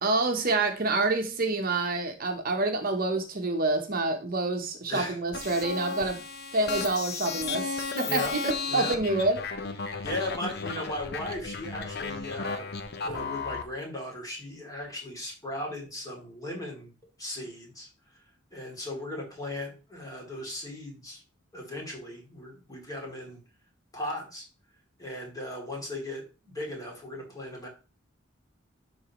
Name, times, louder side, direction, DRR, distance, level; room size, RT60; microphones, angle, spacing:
voice 1, 0.0-6.2 6.5-9.4, right 2 dB, 45° right, 5 dB, 1.0 m, -27 dB
sound 1, 5.3-13.6, left 4 dB, 55° left, 0.9 m, -34 dB
voice 2, 8.0-8.3 8.7-9.0 10.0-12.7 13.0-16.9 17.2-17.9 18.5-21.2 21.5-23.4 23.9-24.5 25.0-27.7, left 1 dB, 20° left, -1 dB, 2.8 m, -37 dB
12.0 x 4.1 x 3.0 m, 0.33 s
head